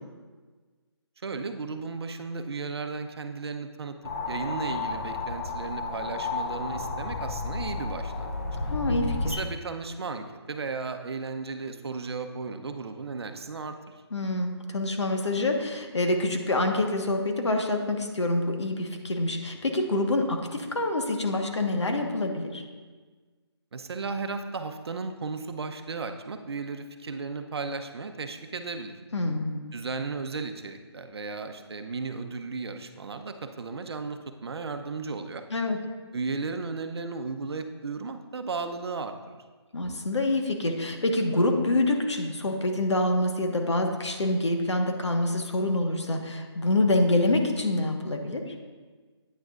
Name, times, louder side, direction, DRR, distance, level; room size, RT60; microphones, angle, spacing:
voice 1, 1.2-4.0 4.3-8.4 9.3-14.0 23.7-29.0 29.7-35.4 36.1-39.2, right 4 dB, 65° right, 7 dB, 0.7 m, -35 dB
sound 1, 4.0-9.4, left 3 dB, 35° left, 0.6 m, -32 dB
voice 2, 8.7-9.4 14.1-22.6 29.1-29.5 35.5-35.8 39.7-48.5, left 2 dB, 80° left, 3 dB, 1.4 m, -26 dB
9.2 x 9.0 x 2.5 m, 1.4 s
figure-of-eight pair, 160°, 15 cm